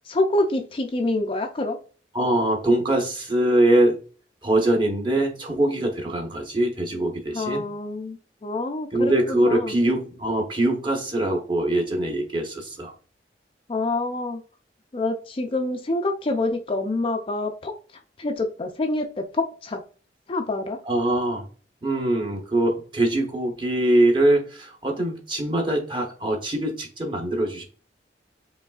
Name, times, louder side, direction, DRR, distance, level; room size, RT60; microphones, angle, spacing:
voice 1, 0.1-1.8 7.3-8.2 8.4-9.7 13.7-14.4 14.9-17.7 18.2-19.8 20.3-20.8, left 2 dB, 30° left, 4 dB, 0.4 m, -26 dB
voice 2, 2.1-4.1 4.4-7.6 8.9-12.9 20.8-21.5 21.8-27.6, right 1 dB, 25° right, 1 dB, 1.0 m, -23 dB
5.2 x 3.1 x 2.4 m, 0.38 s
head